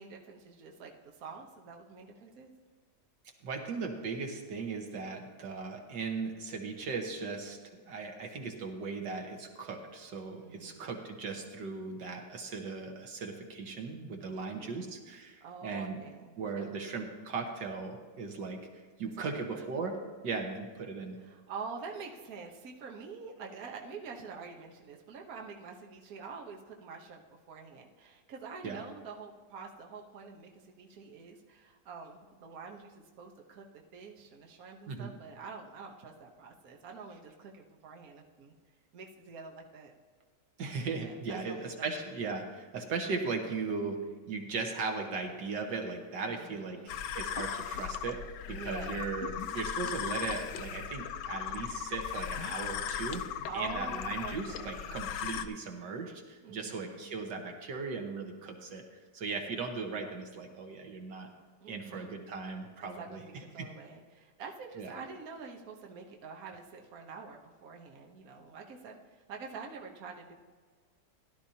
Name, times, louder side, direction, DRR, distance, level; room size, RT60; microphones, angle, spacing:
voice 1, 0.0-2.5 10.4-10.9 14.3-15.0 15.4-16.8 19.2-19.7 21.2-33.7 33.9-38.6 38.9-39.9 40.9-42.1 46.3-47.0 48.5-49.1 53.5-55.0 56.4-57.1 61.6-62.2 62.8-70.3, right 5 dB, 60° right, 1 dB, 1.5 m, -46 dB
voice 2, 3.4-16.0 16.4-18.6 19.0-20.0 20.2-21.2 28.6-28.8 34.9-35.1 40.6-46.8 47.2-48.2 48.5-53.3 53.5-58.9 59.1-61.3 61.7-63.2 63.6-63.7 64.8-64.9, right 4 dB, 85° right, 3 dB, 2.0 m, -38 dB
sound 1, 46.9-55.5, left 9 dB, 80° left, 1.3 m, -37 dB
16.5 x 12.0 x 2.8 m, 1.5 s
omnidirectional pair, 1.9 m